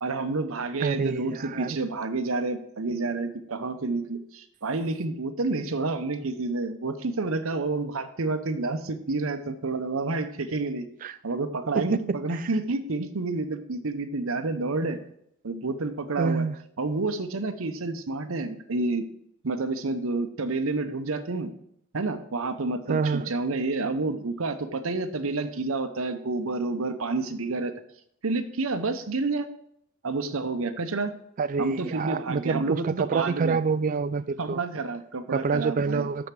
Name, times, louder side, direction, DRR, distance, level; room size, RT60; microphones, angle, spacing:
voice 1, 0.0-15.0 15.4-16.4 16.8-19.0 19.4-21.5 21.9-27.7 28.2-29.5 30.0-31.1 31.6-33.6 34.4-36.1, right 3 dB, 70° right, 0.8 m, -29 dB
voice 2, 0.8-1.8 11.0-11.1 11.7-12.5 16.2-16.6 22.9-23.3 31.4-34.6 35.3-36.3, right 5 dB, 40° right, 0.3 m, -27 dB
7.0 x 5.1 x 5.9 m
head